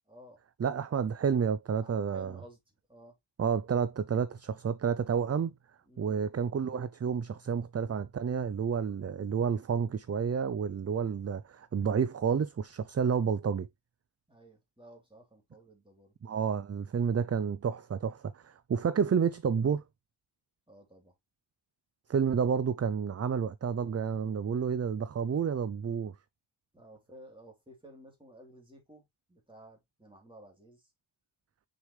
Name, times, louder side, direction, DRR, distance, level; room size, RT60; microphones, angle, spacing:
voice 1, 0.1-0.4 1.8-2.6 2.9-3.2 5.9-6.2 14.3-16.1 20.7-21.1 26.7-29.0 29.3-30.9, right 1 dB, 10° right, 3.3 m, -54 dB
voice 2, 0.6-2.4 3.4-5.5 6.0-13.7 16.2-19.8 22.1-26.1, right 6 dB, 35° right, 0.4 m, -30 dB
6.5 x 4.8 x 3.2 m
wide cardioid pair, 90°, 48 cm